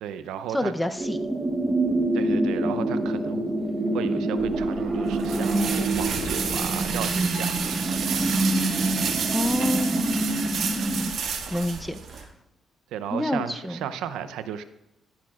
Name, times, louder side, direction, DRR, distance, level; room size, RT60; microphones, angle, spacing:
voice 1, 0.0-0.7 2.1-3.6 3.9-8.2 12.9-14.6, right 9 dB, 90° right, 12 dB, 0.6 m, -35 dB
voice 2, 0.5-1.2 9.3-10.3 11.5-12.3 13.1-13.9, left 1 dB, 5° left, 8 dB, 0.7 m, -28 dB
sound 1, 1.0-11.1, right 2 dB, 20° right, 1.1 m, -26 dB
sound 2, 4.4-12.2, right 6 dB, 60° right, 1.8 m, -30 dB
Bell, 7.3-9.0, left 6 dB, 75° left, 1.2 m, -48 dB
12.0 x 10.0 x 2.4 m, 0.92 s
cardioid pair, 90°, 0 cm